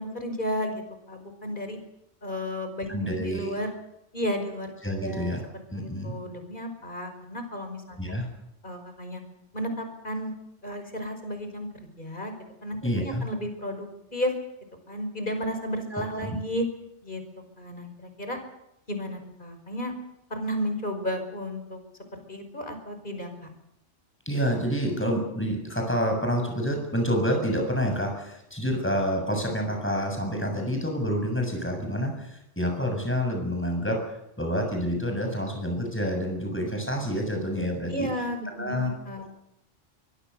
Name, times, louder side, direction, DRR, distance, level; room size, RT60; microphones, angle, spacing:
voice 1, 0.0-1.8 2.2-3.8 4.1-4.7 5.0-8.1 8.6-9.2 9.5-10.4 10.6-12.4 12.6-14.3 14.9-16.7 17.0-17.2 17.6-18.4 18.9-19.9 20.3-21.8 22.1-23.5 37.9-39.3, equal, 40° left, 6 dB, 5.4 m, -33 dB
voice 2, 2.9-3.6 4.8-5.4 5.7-6.1 8.0-8.3 12.8-13.2 16.2-16.3 24.3-34.0 34.4-38.1 38.5-38.9, equal, 10° left, 3 dB, 7.5 m, -28 dB
23.5 x 22.5 x 6.9 m, 0.82 s
omnidirectional pair, 1.2 m